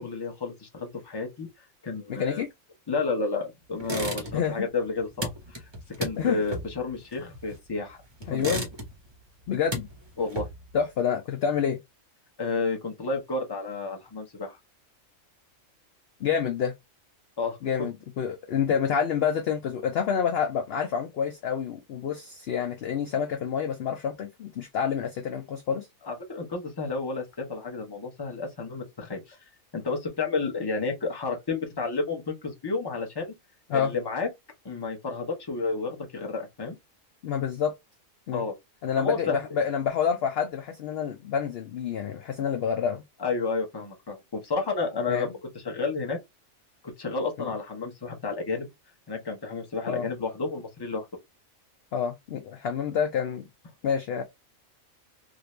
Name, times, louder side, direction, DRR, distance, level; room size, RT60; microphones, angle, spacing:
voice 1, 0.0-1.5 1.8-2.4 2.9-5.6 6.0-8.4 10.2-10.5 12.4-14.6 17.4-17.9 26.0-29.4 29.7-33.3 33.7-34.3 34.6-36.7 38.3-38.5 38.9-39.4 43.2-46.2 47.0-48.7 49.1-51.1, left 4 dB, 20° left, 0.8 m, -31 dB
voice 2, 2.1-2.5 4.3-4.5 6.2-6.4 8.3-8.6 9.5-9.8 10.7-11.8 16.2-16.7 17.6-25.9 33.7-33.9 37.2-37.7 38.3-38.4 38.8-43.0 45.1-45.3 47.4-47.5 49.9-50.1 51.9-53.5 53.8-54.2, left 7 dB, 65° left, 0.6 m, -28 dB
sound 1, 3.8-4.6 4.8-7.8 8.2-9.1 9.4-10.8, right 1 dB, 30° right, 0.6 m, -34 dB
2.7 x 2.5 x 3.2 m
omnidirectional pair, 1.4 m